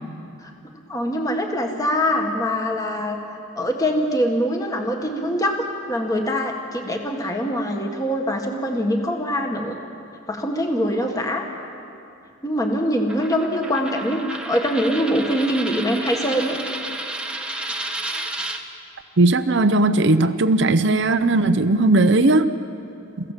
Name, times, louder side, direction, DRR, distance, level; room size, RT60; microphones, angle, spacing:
voice 1, 0.9-3.2 3.6-9.8 10.3-11.5 12.4-16.6, equal, 15° left, 2 dB, 1.7 m, -23 dB
Coin (dropping), 13.1-18.6, right 2 dB, 5° right, 1.3 m, -31 dB
voice 2, 19.2-22.5, right 2 dB, 55° right, 10 dB, 0.7 m, -17 dB
29.0 x 16.0 x 7.5 m, 2.7 s
head